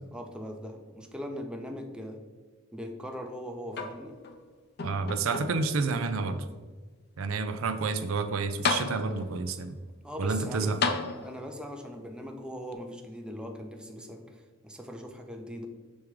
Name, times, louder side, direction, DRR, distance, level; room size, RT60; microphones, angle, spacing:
voice 1, 0.1-2.2 2.7-4.1 10.0-10.7 11.2-15.7, equal, 5° right, 3 dB, 0.6 m, -40 dB
sound 1, 3.7-4.4 4.8-5.8 6.5-6.6 8.2-8.3 8.6-9.4 10.8-11.7 12.7-12.8, left 4 dB, 55° left, 0.6 m, -32 dB
voice 2, 4.8-6.4 7.2-9.8 10.2-10.8, right 4 dB, 75° right, 9 dB, 0.5 m, -29 dB
7.2 x 3.5 x 4.8 m, 1.4 s
head